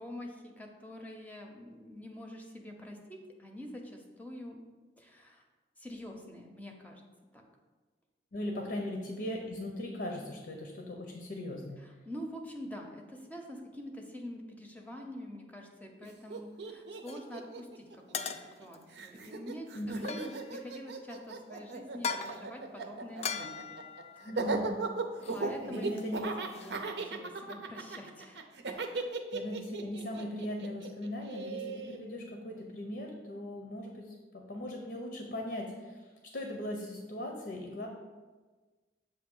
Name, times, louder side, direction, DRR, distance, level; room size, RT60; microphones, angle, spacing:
voice 1, 0.0-4.6 5.0-5.4 5.8-7.0 7.3-7.4 8.5-8.7 11.8-23.8 25.3-26.0 26.5-28.4 28.9-29.1, left 1 dB, 10° left, 2 dB, 0.6 m, -46 dB
voice 2, 8.3-11.8 19.7-20.1 24.2-24.9 25.6-26.2 26.6-26.8 29.3-36.0 36.3-37.9, left 1 dB, 65° left, 1 dB, 0.7 m, -39 dB
Laughter, 16.0-16.1 16.3-18.6 18.9-32.0, right 3 dB, 70° right, 0.6 m, -37 dB
sound 1, 17.1-17.3 18.1-18.8 19.9-20.7 21.9-22.5 23.2-24.7 25.2-25.5 25.7-26.8, left 6 dB, 35° left, 0.3 m, -40 dB
7.5 x 2.7 x 5.4 m, 1.3 s
head